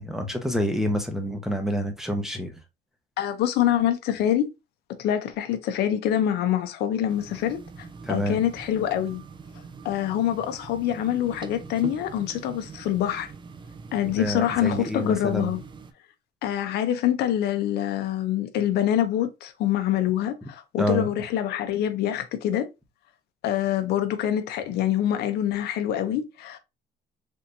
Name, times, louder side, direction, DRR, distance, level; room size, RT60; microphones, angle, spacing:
voice 1, 0.0-2.5 8.0-8.4 14.2-15.5 20.8-21.1, equal, 5° right, 0.7 m, -27 dB
voice 2, 3.2-4.5 5.0-9.2 9.8-13.3 13.9-15.6 16.4-22.7 23.4-26.6, left 11 dB, 75° left, 0.5 m, -25 dB
sound 1, 7.1-15.9, right 5 dB, 30° right, 0.4 m, -43 dB
3.4 x 2.8 x 2.5 m
cardioid pair, 110°, 17 cm